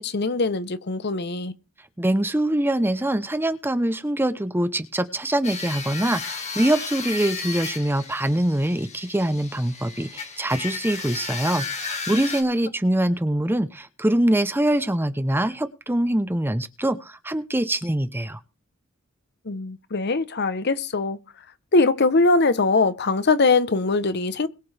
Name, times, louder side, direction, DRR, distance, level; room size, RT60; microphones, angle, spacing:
voice 1, 0.0-1.5 19.4-21.2 21.7-24.5, left 3 dB, 55° left, 0.9 m, -21 dB
voice 2, 2.0-18.4, right 1 dB, 10° right, 0.8 m, -24 dB
sound 1, 5.4-12.4, left 4 dB, 35° left, 2.3 m, -34 dB
21.5 x 8.4 x 3.4 m
head